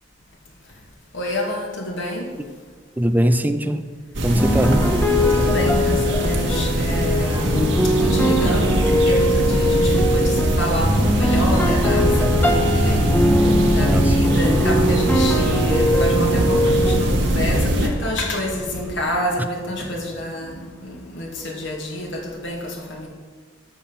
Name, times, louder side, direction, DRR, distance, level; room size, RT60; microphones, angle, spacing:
voice 1, 1.1-2.3 4.7-4.8 5.3-13.1 13.7-23.1, left 1 dB, 90° left, 0 dB, 2.4 m, -28 dB
voice 2, 3.0-3.9 4.2-5.0 13.9-14.1, equal, 10° right, 9 dB, 0.5 m, -21 dB
sound 1, 4.1-17.9, right 1 dB, 75° right, 1.7 m, -21 dB
sound 2, 4.3-17.0, equal, 10° left, 1.2 m, -21 dB
12.5 x 5.9 x 7.4 m, 1.5 s
head